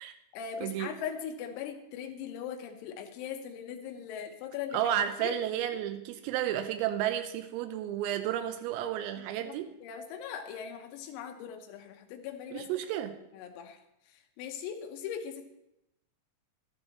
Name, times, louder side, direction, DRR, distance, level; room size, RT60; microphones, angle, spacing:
voice 1, 0.0-4.8 5.2-5.4 9.2-9.6 9.8-12.7 13.3-13.8 14.1-15.5, left 8 dB, 90° left, 5 dB, 3.8 m, -40 dB
voice 2, 4.7-9.7 12.5-13.2, right 11 dB, 85° right, 8 dB, 3.3 m, -32 dB
13.5 x 12.5 x 3.0 m, 0.84 s
omnidirectional pair, 6.0 m